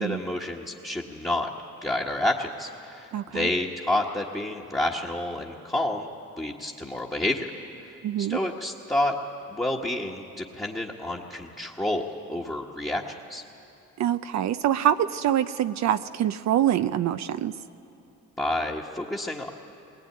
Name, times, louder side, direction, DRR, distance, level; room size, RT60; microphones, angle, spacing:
voice 1, 0.0-1.5 1.8-6.1 6.4-7.5 8.2-9.1 9.5-13.4 18.4-19.5, left 1 dB, 10° left, -3 dB, 1.5 m, -29 dB
voice 2, 3.1-3.5 8.0-8.4 14.0-17.5, right 11 dB, 65° right, 11 dB, 0.6 m, -25 dB
20.5 x 20.0 x 9.5 m, 2.7 s
cardioid pair, 90°, 30 cm